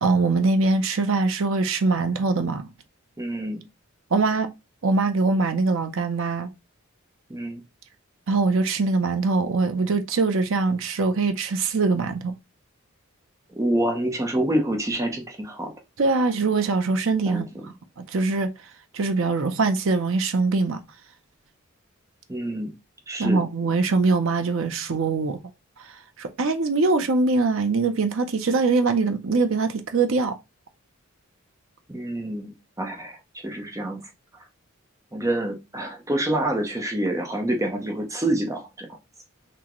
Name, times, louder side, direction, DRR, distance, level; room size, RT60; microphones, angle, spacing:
voice 1, 0.0-2.7 4.1-4.5 4.8-6.5 8.3-12.3 16.0-17.4 18.0-18.5 18.9-20.8 23.2-25.4 25.8-25.9 26.2-30.4, right 3 dB, 60° right, 0.5 m, -22 dB
voice 2, 3.2-3.6 7.3-7.6 13.5-15.7 17.3-17.7 22.3-22.7 23.1-23.4 31.9-33.2 33.4-34.0 35.1-38.9, right 1 dB, 15° right, 0.6 m, -27 dB
6.0 x 2.1 x 3.0 m
head